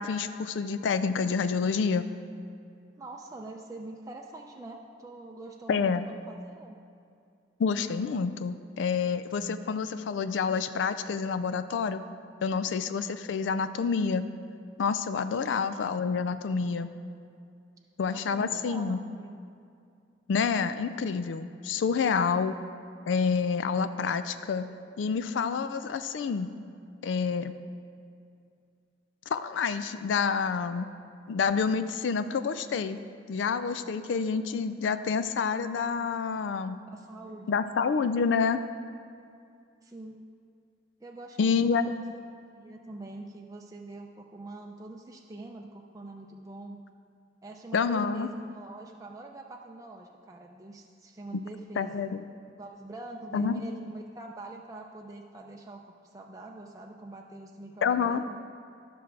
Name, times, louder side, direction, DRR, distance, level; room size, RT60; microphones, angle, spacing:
voice 1, 0.0-2.1 5.7-6.0 7.6-12.0 12.4-14.3 14.8-16.9 18.0-19.0 20.3-22.6 23.1-24.7 25.0-26.5 27.0-27.5 29.3-30.9 31.3-33.0 33.3-36.8 37.5-38.6 41.4-41.9 47.7-48.3 51.8-52.2 53.3-53.6 57.8-58.2, left 5 dB, 85° left, 11 dB, 0.4 m, -28 dB
voice 2, 3.0-6.8 15.3-15.5 18.1-19.4 36.9-37.6 39.8-40.2 41.0-41.9 42.5-46.8 47.4-52.1 52.6-58.4, right 2 dB, 20° right, 1 dB, 0.4 m, -44 dB
12.5 x 6.1 x 4.6 m, 2.4 s
head